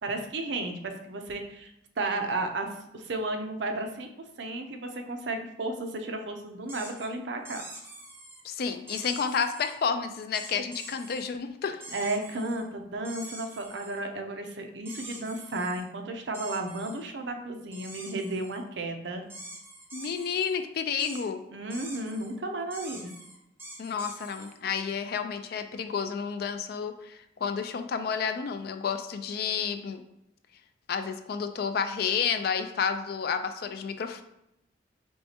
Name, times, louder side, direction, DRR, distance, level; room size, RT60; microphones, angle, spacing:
voice 1, 0.0-2.7 2.9-4.1 4.4-7.6 11.9-19.2 21.5-23.1, right 2 dB, 65° right, 4 dB, 0.5 m, -33 dB
sound 1, 6.7-7.1 7.5-8.4 8.9-9.8 10.3-11.3 11.8-12.6 13.0-14.0 14.9-15.8 16.3-17.0 17.7-18.6 19.3-20.6 21.0-21.2 21.7-22.3 22.7-24.6, right 1 dB, 10° right, 0.7 m, -45 dB
voice 2, 8.4-11.8 19.9-21.4 23.8-30.0 30.9-34.2, left 6 dB, 55° left, 8 dB, 0.3 m, -30 dB
4.5 x 3.2 x 2.8 m, 0.84 s
head